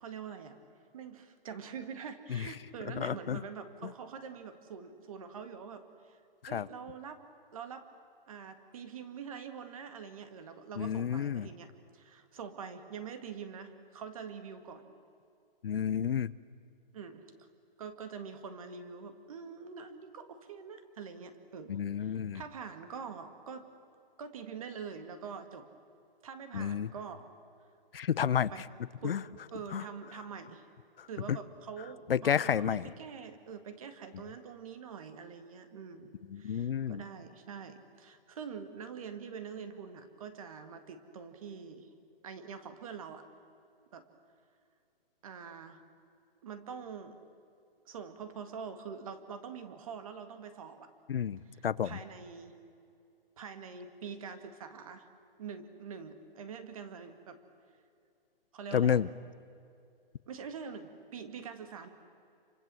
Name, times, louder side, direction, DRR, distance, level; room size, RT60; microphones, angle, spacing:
voice 1, 0.0-0.6 0.9-6.2 6.5-7.2 7.5-7.9 8.3-14.9 16.9-17.5 17.8-23.7 24.2-25.7 26.2-27.3 28.5-28.6 29.0-30.7 31.1-41.9 42.2-43.2 43.9-44.1 45.2-45.8 46.4-47.2 47.9-50.9 51.5-52.6 53.4-55.1 55.4-57.4 58.5-59.0 60.3-61.9, right 6 dB, 35° right, 9 dB, 2.0 m, -45 dB
voice 2, 3.0-3.4 6.4-6.7 10.8-11.5 15.6-16.3 21.7-22.4 26.5-26.9 27.9-28.5 29.0-29.2 29.7-29.8 31.0-31.4 32.1-32.9 36.3-37.0 51.1-52.0 58.7-59.1, left 8 dB, 75° left, 17 dB, 0.8 m, -30 dB
28.5 x 25.0 x 7.7 m, 2.5 s
hypercardioid pair, 170°, 29 cm